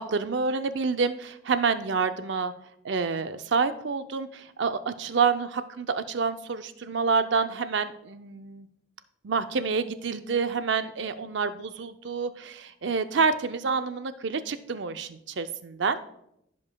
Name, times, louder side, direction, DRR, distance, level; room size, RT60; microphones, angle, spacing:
voice 1, 0.0-2.5 2.8-8.7 9.2-16.0, right 5 dB, 70° right, 10 dB, 0.5 m, -28 dB
15.5 x 5.3 x 2.2 m, 0.78 s
head